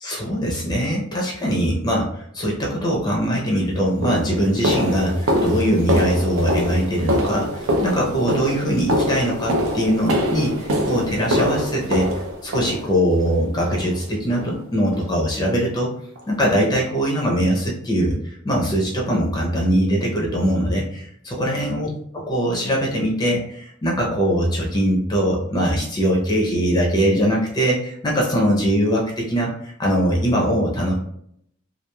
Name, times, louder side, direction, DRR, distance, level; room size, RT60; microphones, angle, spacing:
voice 1, 0.0-12.1 12.4-15.9 16.3-18.2 18.4-30.9, equal, 20° left, -2 dB, 0.5 m, -21 dB
sound 1, 3.3-3.5 4.0-13.2 13.7-14.1 14.3-14.5 14.9-15.1 15.5-15.6 16.2-16.3, equal, 80° right, 0.5 m, -24 dB
3.0 x 2.3 x 2.2 m, 0.69 s
head